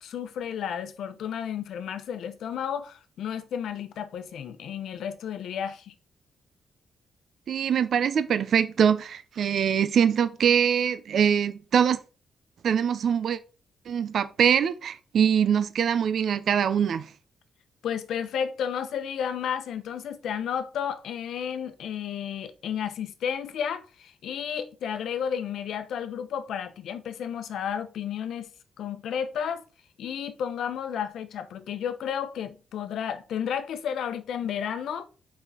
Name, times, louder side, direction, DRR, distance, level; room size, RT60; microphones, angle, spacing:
voice 1, 0.0-5.9 17.8-28.5 28.8-29.6 30.0-35.1, left 8 dB, 75° left, 0.8 m, -32 dB
voice 2, 7.5-12.0 12.6-13.4 13.9-17.1, right 8 dB, 60° right, 0.5 m, -23 dB
5.8 x 5.4 x 4.1 m
cardioid pair, 140°, 0 cm